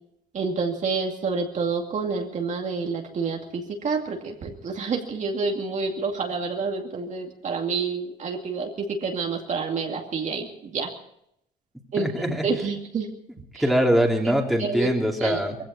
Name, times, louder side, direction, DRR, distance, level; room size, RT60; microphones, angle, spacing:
voice 1, 0.3-10.9 11.9-13.1 13.5-13.6 14.6-14.9 15.2-15.4, right 4 dB, 45° right, 2 dB, 2.4 m, -28 dB
voice 2, 12.0-12.5 13.6-15.6, equal, ahead, 0 dB, 2.9 m, -22 dB
20.5 x 16.0 x 4.3 m, 0.74 s
cardioid pair, 110°, 17 cm